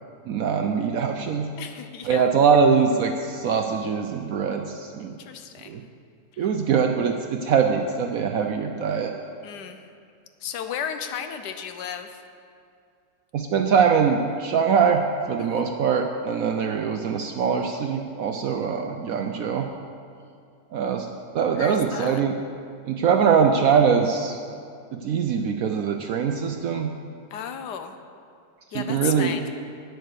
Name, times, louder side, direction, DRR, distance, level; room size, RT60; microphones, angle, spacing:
voice 1, 0.3-1.5 2.0-5.1 5.7-5.8 6.4-9.1 13.3-15.0 15.3-19.7 20.7-21.1 21.3-22.4 22.9-24.4 24.9-26.9 28.7-29.3, right 6 dB, 70° right, 4 dB, 0.9 m, -22 dB
voice 2, 1.6-2.3 5.1-5.8 6.4-6.5 9.4-9.8 10.4-12.1 15.4-15.7 21.5-22.2 27.3-27.9 28.7-29.5, left 8 dB, 70° left, 7 dB, 1.2 m, -34 dB
9.2 x 7.9 x 6.7 m, 2.4 s
omnidirectional pair, 1.9 m